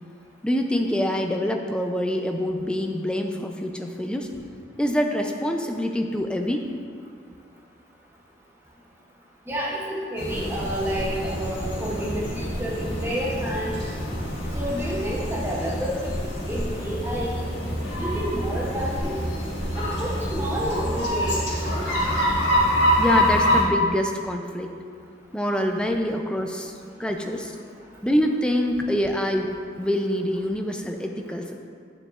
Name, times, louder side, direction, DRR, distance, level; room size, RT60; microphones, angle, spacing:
voice 1, 0.4-4.3 4.8-6.6 23.0-24.7 25.3-26.7 27.0-27.6 28.0-29.5 29.8-31.5, equal, 5° left, 3 dB, 0.4 m, -25 dB
voice 2, 9.5-13.7 14.5-16.1 16.4-17.4 17.7-19.2 19.8-21.4 21.6-21.9, equal, 10° right, -4 dB, 0.7 m, -30 dB
sound 1, 10.2-23.6, equal, 75° left, 1.5 m, -26 dB
9.1 x 6.8 x 2.4 m, 2.2 s
head